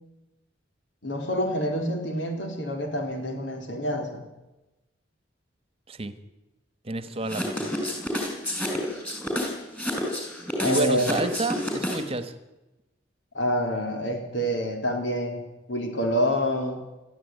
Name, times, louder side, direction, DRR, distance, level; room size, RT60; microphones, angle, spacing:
voice 1, 1.0-4.2 8.8-9.0 10.6-11.1 13.3-16.8, equal, 70° left, 4 dB, 4.3 m, -27 dB
voice 2, 6.8-7.7 10.6-12.3, right 2 dB, 30° right, 12 dB, 1.4 m, -29 dB
sound 1, 7.3-12.2, left 1 dB, 10° left, 5.6 m, -29 dB
20.5 x 14.0 x 9.5 m, 1.0 s
head